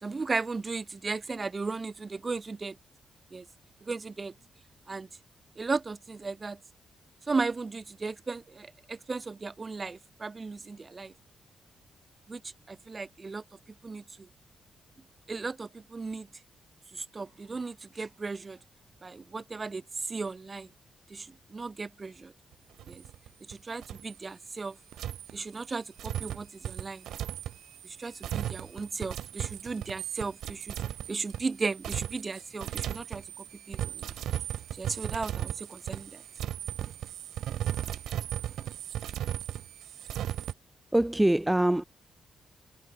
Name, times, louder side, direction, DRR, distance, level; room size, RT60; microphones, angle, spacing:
voice 1, 0.0-2.8 3.3-3.5 3.8-4.3 4.9-5.1 5.6-6.6 7.3-11.1 12.3-12.4 12.7-13.4 13.8-14.3 15.3-16.3 16.9-18.6 19.0-20.7 21.1-22.3 22.9-23.0 23.5-24.8 25.3-27.1 27.8-30.7 31.1-34.1 34.8-36.2, right 4 dB, 30° right, 1.4 m, -36 dB
sound 1, 22.8-23.5 23.8-24.1 24.9-40.5, right 11 dB, 90° right, 0.5 m, -36 dB
voice 2, 40.9-41.8, right 1 dB, 10° right, 0.7 m, -23 dB
cardioid pair, 95°, 0 cm